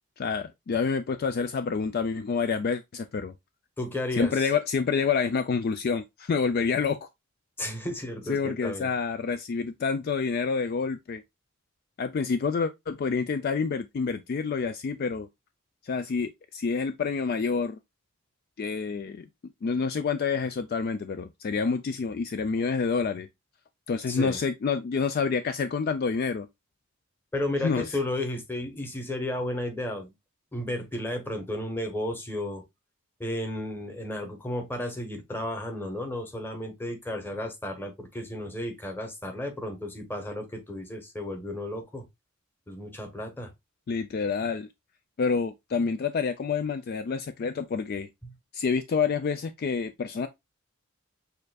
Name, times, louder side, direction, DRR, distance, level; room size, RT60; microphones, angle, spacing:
voice 1, 0.2-3.3 4.1-7.1 8.3-11.2 12.0-15.3 15.8-17.8 18.6-19.3 19.6-23.3 23.9-26.5 27.6-28.0 43.9-44.7 45.2-48.1 48.5-50.3, left 5 dB, 45° left, 0.3 m, -28 dB
voice 2, 3.8-4.5 7.6-8.9 24.1-24.4 27.3-30.1 30.5-32.6 33.2-42.0 42.7-43.5 48.2-48.3, left 1 dB, 10° left, 1.0 m, -33 dB
6.6 x 2.5 x 2.3 m
head